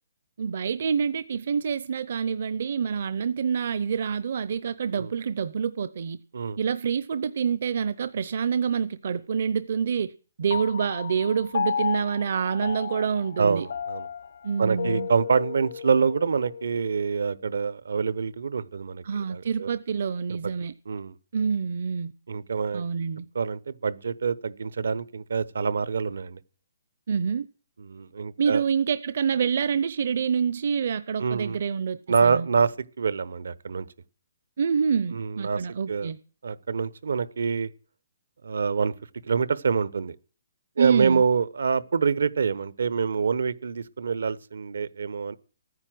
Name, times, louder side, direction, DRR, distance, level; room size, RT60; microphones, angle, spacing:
voice 1, 0.4-6.2 6.6-10.1 10.4-13.7 14.4-15.1 19.0-20.7 21.3-22.1 22.7-23.3 27.1-27.5 28.4-32.5 34.6-36.2 40.8-41.2, right 6 dB, 60° right, 0.7 m, -27 dB
Piano, 10.5-17.2, left 6 dB, 70° left, 0.6 m, -34 dB
voice 2, 13.4-14.1 14.6-19.7 20.9-21.1 22.3-22.8 23.3-26.4 27.9-28.6 31.2-31.6 32.1-32.7 33.0-33.8 35.1-35.6 35.9-36.1 36.4-37.7 38.4-38.9 39.3-40.2 40.8-45.4, right 5 dB, 80° right, 1.0 m, -26 dB
13.5 x 9.7 x 7.7 m
hypercardioid pair, 155°, 0 cm